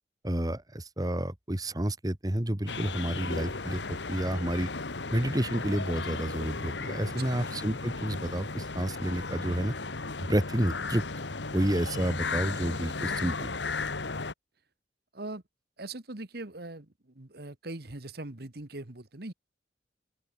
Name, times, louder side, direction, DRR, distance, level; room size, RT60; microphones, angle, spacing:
voice 1, 0.2-4.7 5.1-9.7 10.2-11.0 11.5-13.5, right 1 dB, 20° right, 1.5 m, -30 dB
sound 1, 2.7-14.3, left 3 dB, 80° left, 1.7 m, -35 dB
voice 2, 7.0-7.4 15.1-15.4 15.8-19.3, right 2 dB, 60° right, 1.7 m, -41 dB
open air
head